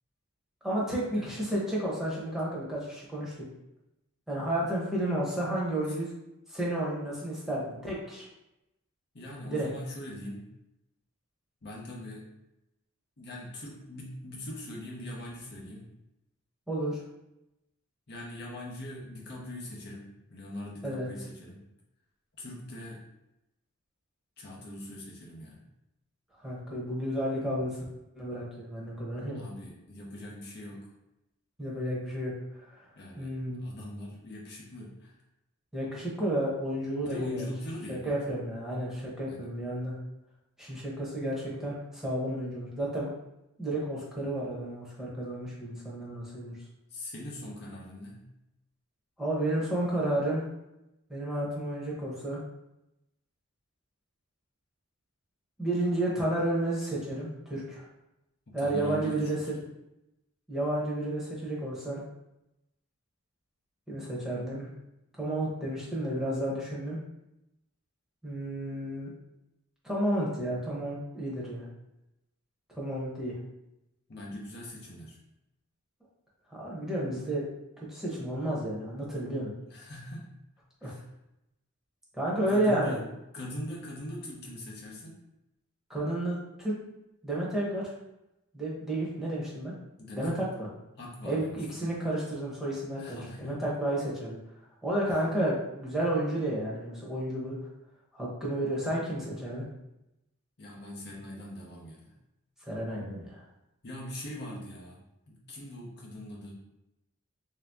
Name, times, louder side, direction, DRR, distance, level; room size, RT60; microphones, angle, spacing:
voice 1, 0.6-3.3 4.3-6.1 6.5-8.2 9.5-9.7 16.7-17.0 20.8-21.1 26.4-27.8 28.1-29.4 31.6-32.3 32.6-32.8 33.2-33.6 35.7-37.5 37.9-40.0 40.6-43.1 43.6-46.6 49.2-50.4 51.1-52.4 55.6-57.9 58.5-59.4 60.5-62.0 63.9-64.7 65.2-67.0 68.2-69.1 69.8-71.7 72.8-73.4 76.5-77.5 77.9-79.5 80.8-80.9 82.1-83.0 85.9-86.8 87.2-87.9 88.5-89.7 90.1-90.7 91.2-94.4 94.8-97.6 98.1-99.6 102.7-103.4, right 1 dB, ahead, -6 dB, 0.9 m, -31 dB
voice 2, 9.1-10.5 11.6-12.2 13.2-15.8 18.1-21.6 22.4-23.0 24.4-25.6 29.3-30.9 33.0-35.1 37.1-38.2 39.3-39.4 46.9-48.2 58.5-59.4 74.1-75.2 79.7-80.3 80.8-81.0 82.5-83.0 83.3-85.1 90.0-90.5 91.0-91.9 93.0-93.7 100.6-102.1 103.8-106.5, left 1 dB, 50° left, -2 dB, 0.8 m, -42 dB
3.4 x 2.8 x 3.5 m, 0.90 s
head